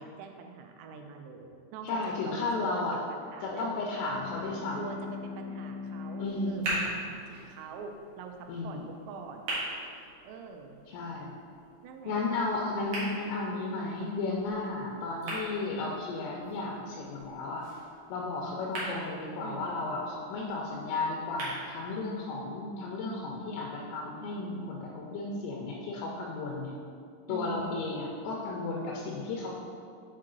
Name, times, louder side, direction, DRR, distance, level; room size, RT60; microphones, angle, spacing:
voice 1, 0.0-3.7 4.7-8.8 9.1-9.5 10.2-10.8 11.8-12.2 19.4-19.7 27.3-27.9, right 4 dB, 85° right, 4 dB, 3.2 m, -44 dB
voice 2, 1.8-3.0 3.4-4.9 6.2-6.8 8.5-8.9 10.9-11.4 12.0-17.7 18.1-26.8 27.3-29.5, left 3 dB, 80° left, -2 dB, 3.2 m, -34 dB
sound 1, 4.1-9.0, left 4 dB, 65° left, 2.1 m, -43 dB
sound 2, 6.2-22.2, right 1 dB, 65° right, 1.8 m, -42 dB
7.6 x 4.5 x 3.8 m, 2.4 s
omnidirectional pair, 6.0 m